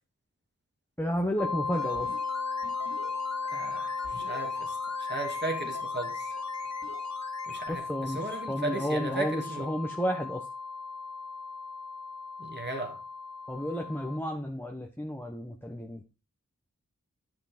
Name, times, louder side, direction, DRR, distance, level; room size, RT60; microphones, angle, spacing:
voice 1, 1.0-2.1 7.7-10.4 13.5-16.0, equal, 5° left, 1.0 m, -32 dB
sound 1, 1.4-14.2, left 4 dB, 90° left, 0.7 m, -36 dB
sound 2, 1.7-7.8 8.0-8.1, left 3 dB, 55° left, 2.5 m, -45 dB
voice 2, 3.5-6.3 7.5-9.7 12.4-13.0, right 2 dB, 30° right, 2.6 m, -36 dB
10.5 x 6.0 x 4.3 m
wide cardioid pair, 45°, 33 cm